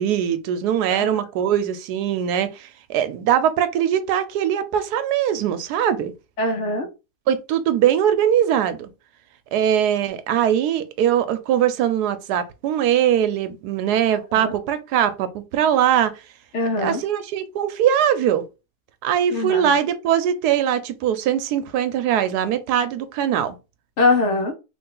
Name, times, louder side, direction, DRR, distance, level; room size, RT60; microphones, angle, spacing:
voice 1, 0.0-6.1 7.3-8.9 9.5-16.1 16.8-18.4 19.0-23.5, right 9 dB, 85° right, 1.2 m, -21 dB
voice 2, 6.4-6.9 14.1-14.5 16.5-17.0 19.3-19.7 24.0-24.5, left 2 dB, 55° left, 1.0 m, -22 dB
3.3 x 2.6 x 3.7 m
omnidirectional pair, 1.7 m